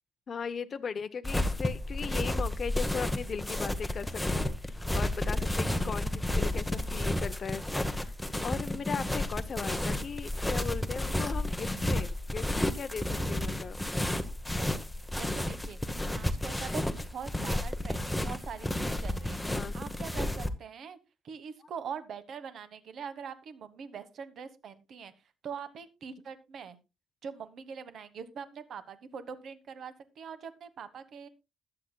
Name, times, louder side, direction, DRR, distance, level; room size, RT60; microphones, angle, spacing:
voice 1, 0.3-8.1 8.4-13.8 19.5-19.8, left 6 dB, 35° left, 11 dB, 0.6 m, -38 dB
sound 1, 1.2-20.5, left 1 dB, 5° left, 0.8 m, -32 dB
voice 2, 15.2-15.8 16.1-21.0 21.2-25.1 25.4-26.8 27.2-31.3, right 6 dB, 55° right, 12 dB, 1.2 m, -43 dB
20.5 x 7.8 x 2.2 m, 0.27 s
cardioid pair, 165°, 0 cm